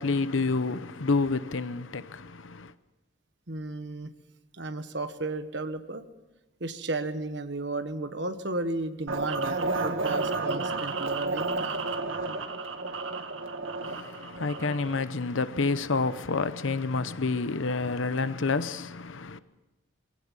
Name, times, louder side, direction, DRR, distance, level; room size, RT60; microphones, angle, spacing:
voice 1, 0.0-2.7 13.8-19.4, left 3 dB, 75° left, 0.8 m, -29 dB
voice 2, 3.5-4.1 4.5-6.0 6.6-11.8, right 2 dB, 60° right, 1.4 m, -34 dB
sound 1, 9.1-15.0, right 3 dB, 80° right, 1.9 m, -31 dB
23.0 x 17.0 x 7.3 m
head